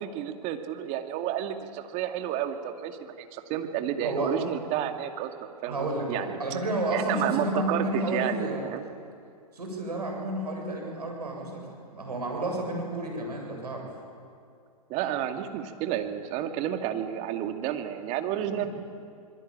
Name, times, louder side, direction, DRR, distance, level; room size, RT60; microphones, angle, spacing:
voice 1, 0.0-6.4 6.9-8.8 14.9-18.7, right 10 dB, 35° right, 6 dB, 2.4 m, -31 dB
voice 2, 5.7-8.6 9.5-13.9 18.6-18.7, right 1 dB, 80° right, 1 dB, 7.6 m, -31 dB
26.0 x 22.0 x 8.9 m, 2.4 s
hypercardioid pair, 115°, 20 cm